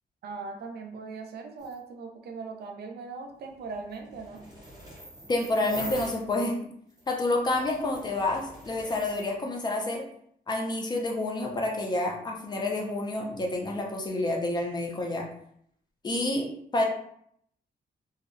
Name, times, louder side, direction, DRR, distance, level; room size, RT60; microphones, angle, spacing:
voice 1, 0.2-4.4, right 4 dB, 80° right, 3 dB, 0.4 m, -39 dB
sound 1, 1.6-1.8 3.5-6.3 6.9-9.3, equal, 25° right, 0.8 m, -44 dB
voice 2, 5.3-6.6 7.1-10.0 10.5-15.3 16.0-16.5 16.7-16.9, left 2 dB, 25° left, 0 dB, 0.4 m, -28 dB
2.6 x 2.0 x 2.4 m, 0.68 s
wide cardioid pair, 175°, 17 cm